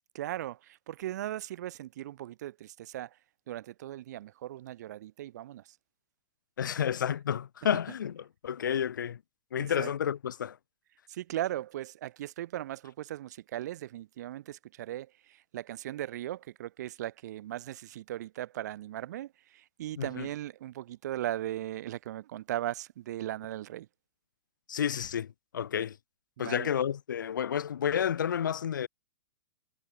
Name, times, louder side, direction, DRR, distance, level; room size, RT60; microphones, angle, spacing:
voice 1, 0.1-3.2 3.5-5.8 9.6-9.9 11.1-23.9 26.4-26.7, right 13 dB, 60° right, 1.7 m, -38 dB
voice 2, 6.6-9.2 9.5-10.6 20.0-20.3 24.7-26.0 26.4-28.9, left 8 dB, 90° left, 2.6 m, -31 dB
hypercardioid pair, 145°, 10 cm